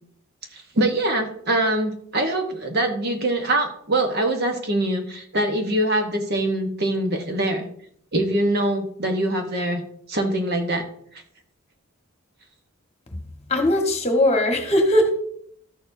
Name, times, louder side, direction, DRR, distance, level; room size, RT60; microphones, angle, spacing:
voice 1, 0.5-7.7 8.1-9.8 10.1-10.8, right 1 dB, 45° right, 4 dB, 1.0 m, -23 dB
voice 2, 13.5-15.1, left 1 dB, 30° left, 3 dB, 1.3 m, -19 dB
13.0 x 6.8 x 2.6 m, 0.66 s
head